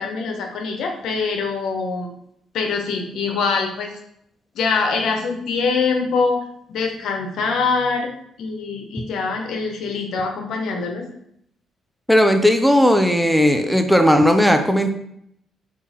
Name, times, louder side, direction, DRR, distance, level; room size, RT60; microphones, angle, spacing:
voice 1, 0.0-2.1 2.5-3.9 4.6-6.4 6.7-8.1 8.4-11.0, left 4 dB, 75° left, 3 dB, 0.7 m, -23 dB
voice 2, 12.1-14.9, equal, ahead, 6 dB, 0.4 m, -16 dB
3.7 x 2.8 x 2.8 m, 0.73 s
cardioid pair, 90°, 0 cm